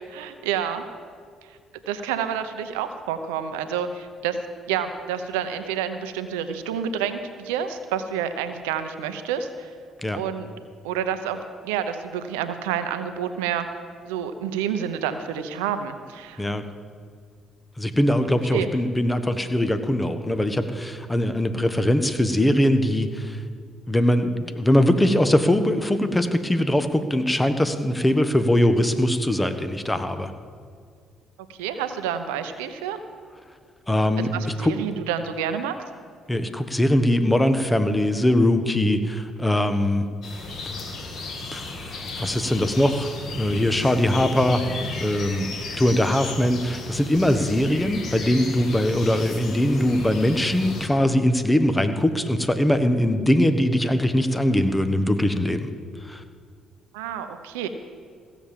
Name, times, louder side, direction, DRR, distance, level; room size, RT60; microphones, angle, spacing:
voice 1, 0.1-0.8 1.5-1.6 1.9-4.4 4.7-9.7 10.1-10.5 10.8-13.7 14.1-16.4 18.5-18.7 31.5-33.0 34.2-35.8 56.9-57.7, right 8 dB, 85° right, 9 dB, 0.7 m, -29 dB
voice 2, 17.8-23.4 23.9-30.3 33.9-34.3 34.6-34.7 36.3-40.0 41.5-44.6 45.0-45.5 45.8-55.7 56.0-56.2, left 1 dB, 15° left, 9 dB, 1.2 m, -21 dB
sound 1, 40.2-50.9, left 3 dB, 60° left, 2.5 m, -35 dB
15.5 x 7.1 x 7.5 m, 2.1 s
hypercardioid pair, 55°, 0 cm